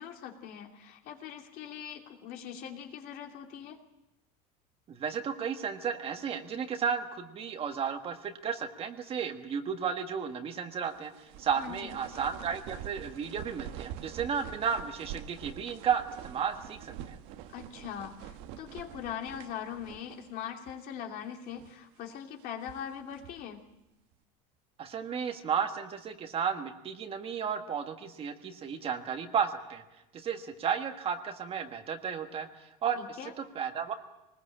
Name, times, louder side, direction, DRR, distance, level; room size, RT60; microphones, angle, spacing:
voice 1, 0.0-3.8 11.6-12.0 17.5-23.6 33.0-33.3, left 9 dB, 50° left, 3 dB, 2.8 m, -41 dB
voice 2, 4.9-17.2 24.8-29.8 30.1-32.5 32.8-33.9, right 7 dB, 30° right, 6 dB, 1.6 m, -33 dB
sound 1, 10.9-20.4 20.6-20.8 21.4-21.9 22.4-23.5, right 11 dB, 70° right, 1.6 m, -46 dB
23.0 x 20.0 x 8.7 m, 0.92 s
cardioid pair, 150°, 19 cm